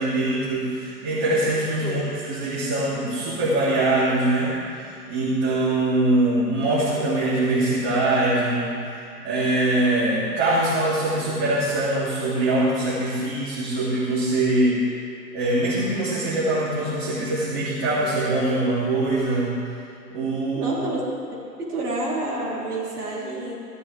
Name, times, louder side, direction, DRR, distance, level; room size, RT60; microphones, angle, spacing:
voice 1, 0.0-4.6 5.1-8.8 9.2-14.8 15.3-19.5 20.1-20.7, right 2 dB, 25° right, -11 dB, 3.2 m, -23 dB
voice 2, 20.6-23.6, right 2 dB, 65° right, -6 dB, 3.8 m, -29 dB
15.0 x 12.5 x 3.5 m, 2.4 s
hypercardioid pair, 140°, 50 cm